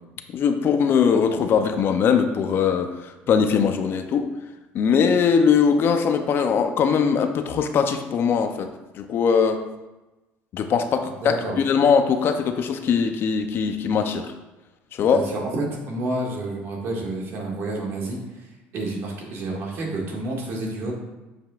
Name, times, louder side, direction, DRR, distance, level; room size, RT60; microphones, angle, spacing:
voice 1, 0.3-4.3 4.7-9.6 10.5-14.3 15.0-15.2, left 6 dB, 50° left, 7 dB, 0.5 m, -21 dB
voice 2, 11.2-11.6 15.1-18.4 18.7-20.9, right 2 dB, 55° right, -1 dB, 1.8 m, -29 dB
7.9 x 5.2 x 2.4 m, 1.1 s
supercardioid pair, 105°, 5 cm